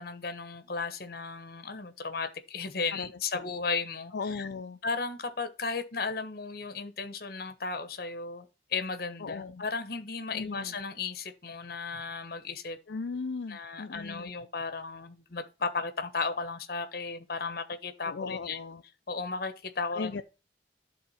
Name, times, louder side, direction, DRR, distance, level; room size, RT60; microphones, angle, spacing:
voice 1, 0.0-4.5 4.8-12.8 13.5-18.6 19.1-20.2, left 4 dB, 60° left, 1.2 m, -35 dB
voice 2, 4.1-4.8 9.2-9.6 10.3-10.7 12.9-14.3 18.0-18.8 19.9-20.2, left 4 dB, 85° left, 0.5 m, -37 dB
11.0 x 3.8 x 5.6 m
head